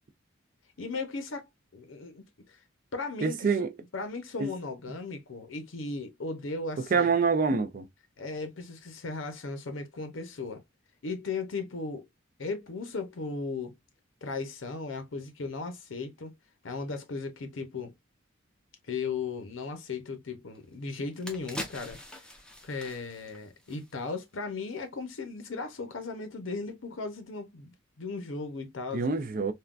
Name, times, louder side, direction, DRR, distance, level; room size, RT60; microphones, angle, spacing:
voice 1, 0.8-2.6 2.9-3.5 3.9-7.1 8.2-10.6 11.0-12.1 12.4-13.7 14.2-16.3 16.6-17.9 18.8-22.2 22.6-29.1, left 4 dB, 75° left, 0.7 m, -36 dB
voice 2, 3.2-3.7 4.4-4.5 6.9-7.9 28.9-29.5, right 5 dB, 45° right, 0.4 m, -26 dB
sound 1, 20.6-20.7 21.0-24.3 24.6-24.8, left 1 dB, 5° left, 0.6 m, -43 dB
3.6 x 2.2 x 2.3 m
head